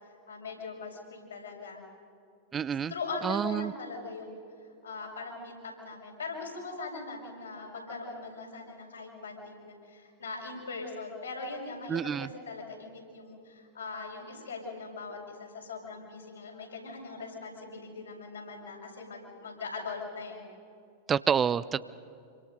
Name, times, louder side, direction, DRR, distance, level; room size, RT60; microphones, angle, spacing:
voice 1, 0.3-1.8 2.7-4.4 4.8-20.4, left 3 dB, 75° left, -2 dB, 6.1 m, -41 dB
voice 2, 2.5-2.9 3.2-3.7 11.9-12.3 21.1-21.8, right 7 dB, 20° right, 17 dB, 0.5 m, -28 dB
27.0 x 25.0 x 5.4 m, 2.5 s
figure-of-eight pair, 90°, 0 cm